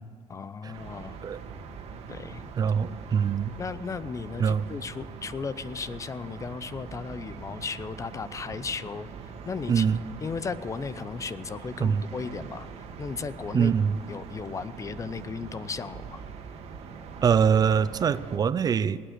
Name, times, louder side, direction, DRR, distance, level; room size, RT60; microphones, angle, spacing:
voice 1, 0.3-1.2 2.1-2.4 3.6-9.1 9.5-9.9 10.2-12.7 13.0-13.7 14.1-16.2, left 5 dB, 30° left, 15 dB, 0.6 m, -35 dB
sound 1, 0.7-18.4, right 5 dB, 70° right, 1.8 m, -42 dB
voice 2, 2.6-3.5 4.4-4.6 9.7-10.0 11.8-12.0 13.5-14.0 17.2-19.0, right 7 dB, 35° right, 16 dB, 0.5 m, -23 dB
19.0 x 9.1 x 6.6 m, 2.3 s
cardioid pair, 115°, 11 cm